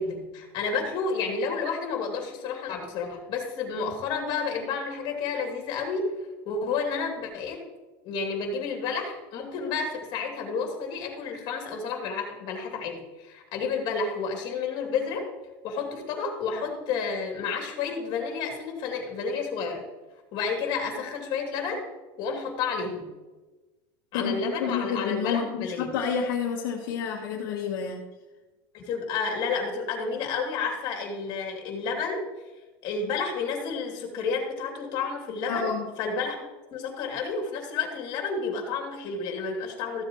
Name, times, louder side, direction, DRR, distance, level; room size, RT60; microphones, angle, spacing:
voice 1, 0.0-6.1 6.5-7.6 8.0-15.3 15.6-19.8 20.3-21.8 22.2-23.1 24.1-25.9 28.7-32.2 32.8-35.7 36.0-36.5 36.7-40.0, left 5 dB, 45° left, 2 dB, 2.8 m, -30 dB
voice 2, 24.1-28.0 35.5-35.9, left 6 dB, 70° left, -1 dB, 1.5 m, -29 dB
14.5 x 7.4 x 3.1 m, 1.2 s
supercardioid pair, 150°, 11 cm